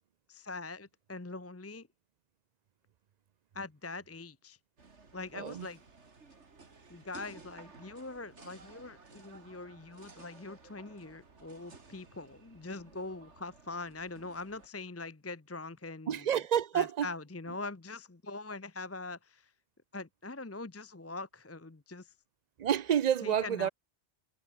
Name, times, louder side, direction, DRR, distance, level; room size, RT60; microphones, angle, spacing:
voice 1, 0.3-1.9 3.5-4.6 5.1-5.8 6.9-16.3 16.7-19.5 19.9-22.1 23.2-23.7, left 3 dB, 15° left, 0.7 m, -43 dB
sound 1, 4.8-14.7, right 4 dB, 80° right, 2.7 m, -56 dB
voice 2, 5.3-5.7 16.1-17.1 22.6-23.7, right 9 dB, 55° right, 0.5 m, -29 dB
omnidirectional pair, 1.2 m